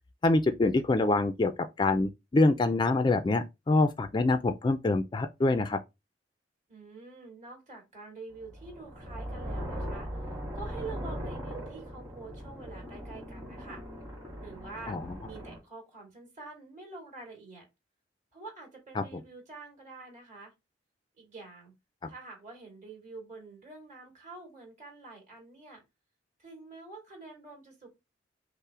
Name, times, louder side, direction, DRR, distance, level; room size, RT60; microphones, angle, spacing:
voice 1, 0.2-1.5 1.8-5.8 14.9-15.1 19.0-19.1, left 2 dB, 25° left, 0.3 m, -25 dB
voice 2, 6.7-10.1 10.5-13.8 14.4-15.0 15.2-17.7 18.3-20.5 21.2-21.7 22.1-25.8 26.4-27.9, right 3 dB, 45° right, 2.3 m, -46 dB
sound 1, 8.4-15.6, equal, 20° right, 1.5 m, -39 dB
5.5 x 2.0 x 4.7 m
head